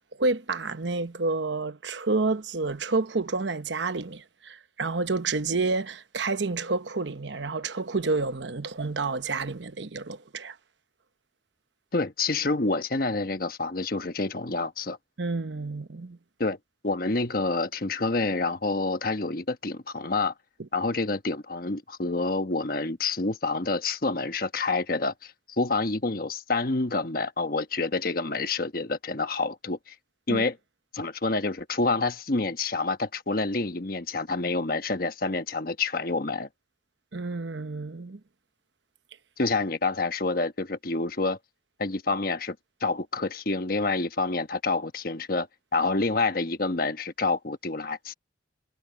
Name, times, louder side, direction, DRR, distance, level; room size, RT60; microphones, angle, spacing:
voice 1, 0.2-10.6 15.2-16.2 30.3-30.4 37.1-38.2, right 3 dB, 75° right, 1.0 m, -29 dB
voice 2, 11.9-15.0 16.4-16.6 16.8-20.3 20.7-29.9 30.3-30.6 30.9-36.5 39.4-41.4 41.8-42.6 42.8-45.5 45.7-48.1, left 3 dB, 50° left, 1.2 m, -28 dB
head